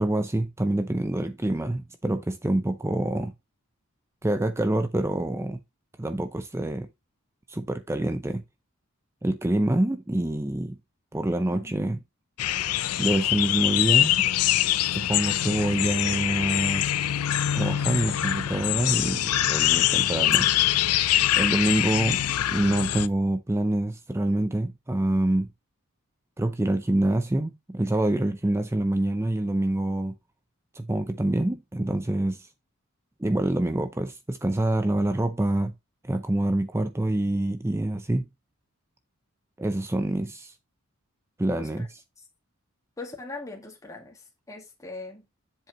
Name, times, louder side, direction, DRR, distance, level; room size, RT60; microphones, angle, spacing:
voice 1, 0.0-3.3 4.2-5.6 6.0-6.9 7.5-8.4 9.2-10.8 11.1-12.0 13.0-14.3 14.9-16.8 17.5-20.5 21.4-22.2 22.5-25.5 26.4-30.1 30.7-32.5 33.2-35.7 36.0-38.2 39.6-40.5 41.4-41.9, right 1 dB, 10° right, 0.5 m, -26 dB
sound 1, 12.4-23.1, left 13 dB, 85° left, 0.5 m, -24 dB
voice 2, 43.0-44.2 44.5-45.2, left 3 dB, 15° left, 2.1 m, -40 dB
7.6 x 7.5 x 3.0 m
head